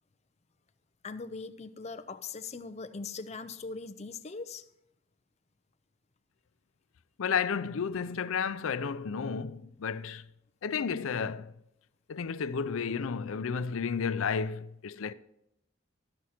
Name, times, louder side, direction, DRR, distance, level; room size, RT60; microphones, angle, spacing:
voice 1, 1.0-4.7, left 4 dB, 30° left, 0.5 m, -40 dB
voice 2, 7.2-10.2 10.6-11.5 12.1-15.1, left 6 dB, 85° left, 0.5 m, -32 dB
13.0 x 6.1 x 4.3 m
head